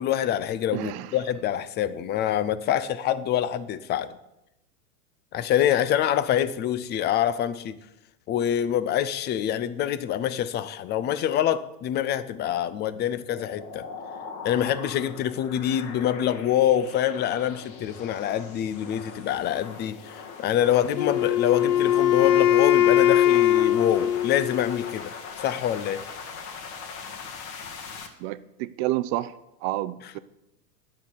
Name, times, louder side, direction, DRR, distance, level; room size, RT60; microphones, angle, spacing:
voice 1, 0.0-4.1 5.3-7.8 8.3-13.9 14.4-26.1, left 10 dB, 25° left, 0.4 m, -26 dB
voice 2, 0.7-1.1 28.2-29.3 29.6-30.2, right 16 dB, 40° right, 0.5 m, -29 dB
sound 1, 13.3-28.1, left 5 dB, 60° left, 1.9 m, -41 dB
Wind instrument woodwind instrument, 21.0-25.0, left 11 dB, 75° left, 0.9 m, -21 dB
9.5 x 7.7 x 6.8 m
hypercardioid pair, 115°, 48 cm